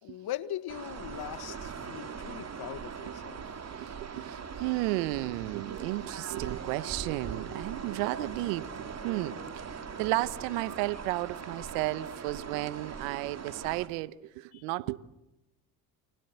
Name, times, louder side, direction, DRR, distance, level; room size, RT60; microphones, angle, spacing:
voice 1, 0.0-3.4 14.5-14.6, left 12 dB, 50° left, 1.8 m, -40 dB
sound 1, 0.7-13.9, right 6 dB, 30° right, 3.4 m, -41 dB
voice 2, 3.7-15.0, right 19 dB, 75° right, 1.2 m, -33 dB
30.0 x 25.0 x 8.0 m
hypercardioid pair, 75°, 48 cm